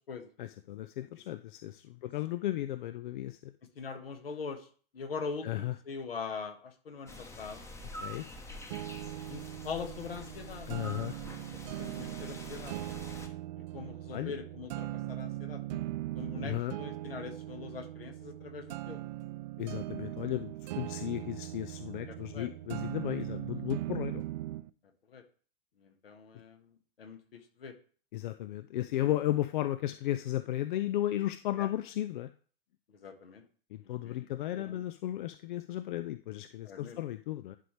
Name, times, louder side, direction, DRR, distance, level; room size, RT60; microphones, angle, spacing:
voice 1, 0.4-3.5 5.4-5.8 8.0-8.2 10.7-11.2 14.1-14.3 16.3-16.7 19.6-24.2 28.1-32.3 33.7-37.6, left 13 dB, 55° left, 12 dB, 0.5 m, -34 dB
voice 2, 3.8-4.6 4.9-7.6 9.3-10.7 11.5-12.7 13.7-15.8 16.1-19.0 22.3-22.5 25.1-25.2 26.0-26.6 27.0-27.7 31.6-31.7 33.0-33.4 33.8-34.3 34.6-34.8 36.6-37.0, left 5 dB, 70° left, 6 dB, 1.5 m, -42 dB
sound 1, 7.1-13.3, left 1 dB, 10° left, 0.9 m, -46 dB
sound 2, 8.7-24.7, right 15 dB, 45° right, 0.4 m, -40 dB
11.0 x 5.0 x 3.2 m, 0.42 s
figure-of-eight pair, 100°, 30 cm